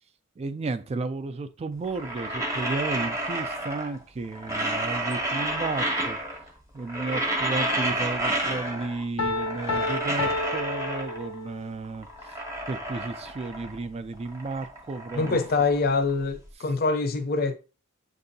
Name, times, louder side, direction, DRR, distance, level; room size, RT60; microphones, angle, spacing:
voice 1, 0.4-6.2 6.7-12.4 12.7-15.4, right 3 dB, 30° right, 0.3 m, -33 dB
sound 1, 1.8-4.0 4.3-6.5 6.8-9.0 9.3-11.4 11.8-13.9 14.1-16.3, right 1 dB, 15° right, 0.8 m, -30 dB
Piano, 9.2-11.8, left 3 dB, 85° left, 0.6 m, -30 dB
voice 2, 15.1-17.5, left 3 dB, 45° left, 0.6 m, -24 dB
7.5 x 2.6 x 2.6 m
head